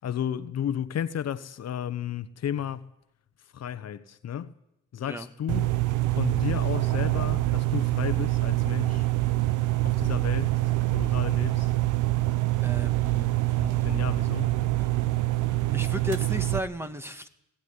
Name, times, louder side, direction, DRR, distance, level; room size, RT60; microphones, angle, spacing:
voice 1, 0.0-2.9 3.5-4.5 4.9-5.7 6.2-9.1 9.8-10.6 10.9-11.7 13.6-14.5, left 9 dB, 55° left, 1.2 m, -33 dB
sound 1, 5.5-16.6, right 18 dB, 85° right, 1.0 m, -25 dB
voice 2, 12.6-13.3 14.8-14.9 15.7-17.3, equal, 10° right, 1.9 m, -34 dB
20.0 x 16.0 x 9.8 m
cardioid pair, 90°, 30 cm